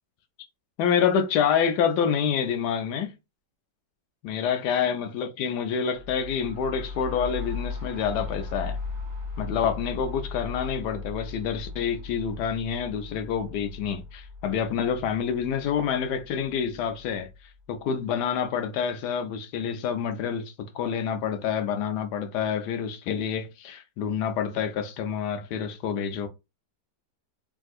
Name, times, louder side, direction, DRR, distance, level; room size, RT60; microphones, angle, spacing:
voice 1, 0.8-3.1 4.2-8.8 9.4-17.3 17.7-26.3, left 7 dB, 75° left, 1.1 m, -27 dB
sound 1, 5.9-17.6, left 4 dB, 40° right, 1.2 m, -38 dB
3.5 x 2.6 x 2.4 m
omnidirectional pair, 1.9 m